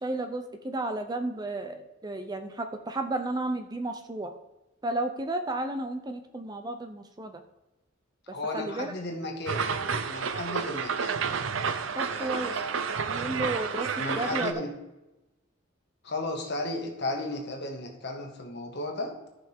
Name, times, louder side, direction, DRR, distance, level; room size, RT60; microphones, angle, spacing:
voice 1, 0.0-4.3 4.8-7.4 8.5-8.9 12.0-12.5 12.9-14.5, right 2 dB, 20° right, 7 dB, 0.5 m, -33 dB
voice 2, 8.3-9.7 10.0-11.2 11.9-12.8 14.0-14.7 16.0-19.1, left 2 dB, 55° left, 2 dB, 1.6 m, -34 dB
sound 1, 9.5-14.5, right 6 dB, 70° right, 0.6 m, -30 dB
13.5 x 5.7 x 3.6 m, 1.0 s
head